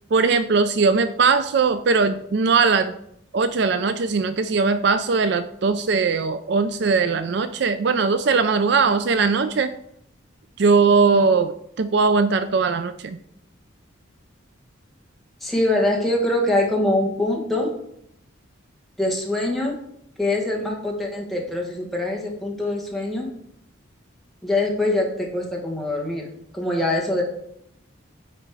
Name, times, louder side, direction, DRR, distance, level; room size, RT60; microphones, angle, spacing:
voice 1, 0.1-2.9 3.3-9.7 10.6-13.2, right 4 dB, 55° right, 11 dB, 0.4 m, -20 dB
voice 2, 15.4-17.7 19.0-19.8 20.2-23.3 24.4-26.3 26.5-27.2, left 1 dB, ahead, -2 dB, 1.5 m, -23 dB
9.0 x 4.4 x 4.7 m, 0.73 s
head